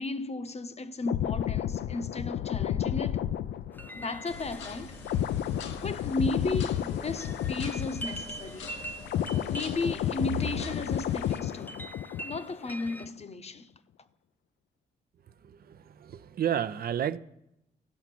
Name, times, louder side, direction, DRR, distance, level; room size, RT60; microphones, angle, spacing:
voice 1, 0.0-3.3 4.0-5.0 5.8-8.7 9.5-11.9 12.2-13.7, left 2 dB, 35° left, 0.9 m, -34 dB
sound 1, 1.0-8.6 8.8-12.5 12.8-13.1, left 11 dB, 65° left, 0.5 m, -32 dB
sound 2, 3.7-13.1, right 2 dB, 10° left, 1.0 m, -45 dB
sound 3, 4.3-11.4, left 2 dB, 85° left, 1.1 m, -43 dB
voice 2, 15.7-17.2, right 9 dB, 60° right, 0.6 m, -31 dB
14.5 x 5.8 x 6.1 m
hypercardioid pair, 50°, 18 cm